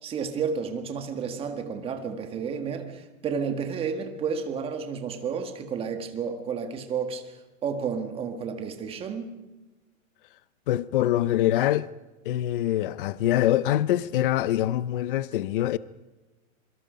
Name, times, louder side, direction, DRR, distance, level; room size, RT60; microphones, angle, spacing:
voice 1, 0.0-7.3 7.6-9.3, right 6 dB, 15° right, 1.6 m, -31 dB
voice 2, 10.7-11.9 12.2-15.8, left 13 dB, 40° left, 0.6 m, -24 dB
26.5 x 23.0 x 5.2 m
hypercardioid pair, 160°, 41 cm